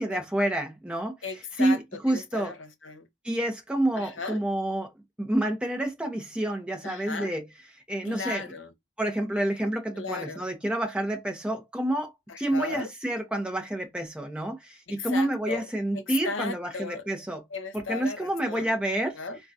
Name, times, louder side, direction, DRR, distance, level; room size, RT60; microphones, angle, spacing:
voice 1, 0.0-1.1 1.6-2.5 3.2-4.9 5.2-7.4 7.9-8.4 9.0-12.1 12.4-17.4 17.7-19.2, right 1 dB, 5° right, 0.8 m, -28 dB
voice 2, 1.2-1.8 2.1-3.1 3.9-4.4 6.8-7.3 8.0-8.7 9.9-10.4 12.3-12.9 14.9-15.7 15.9-17.1 17.5-18.7 19.1-19.4, left 4 dB, 70° left, 0.9 m, -36 dB
3.7 x 2.3 x 2.7 m
head